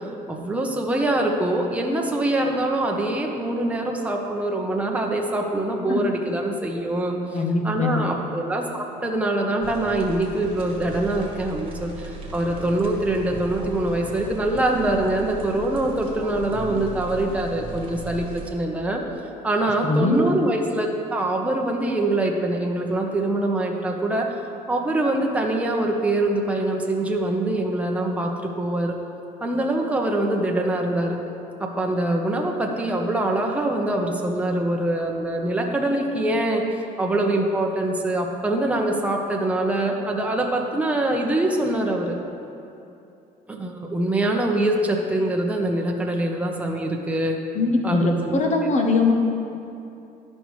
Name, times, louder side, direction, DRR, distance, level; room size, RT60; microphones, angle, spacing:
voice 1, 0.3-7.2 7.6-19.0 19.4-24.3 24.7-28.9 29.4-31.2 31.6-36.6 37.0-42.1 43.5-47.4 47.8-48.4 48.6-48.7, right 1 dB, 10° right, 0 dB, 0.8 m, -24 dB
voice 2, 7.3-8.0 19.8-20.2 47.5-49.1, left 3 dB, 45° left, 3 dB, 0.9 m, -21 dB
sound 1, 9.6-18.5, right 2 dB, 30° right, 1.4 m, -37 dB
12.0 x 5.4 x 3.2 m, 2.7 s
cardioid pair, 110°, 17 cm